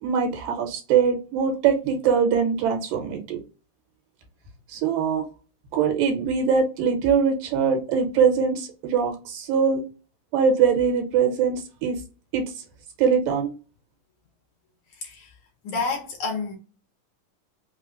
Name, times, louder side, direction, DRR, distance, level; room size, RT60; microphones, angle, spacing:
voice 1, 0.0-3.4 4.7-5.3 5.7-9.8 10.3-12.0 12.3-12.4 13.0-13.5, right 6 dB, 80° right, 2.6 m, -22 dB
voice 2, 15.0-15.3 15.6-16.5, left 4 dB, 75° left, 1.9 m, -29 dB
5.4 x 2.1 x 2.5 m
omnidirectional pair, 3.9 m